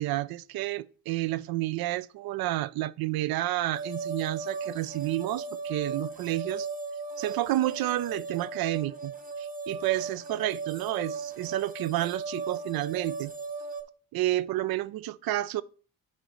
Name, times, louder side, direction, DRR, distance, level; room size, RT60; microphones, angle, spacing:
voice 1, 0.0-6.7 7.2-13.3 14.1-15.6, right 16 dB, 60° right, 0.5 m, -30 dB
sound 1, 3.7-13.8, right 4 dB, 20° right, 0.8 m, -37 dB
10.0 x 4.0 x 3.1 m
supercardioid pair, 70°, 42 cm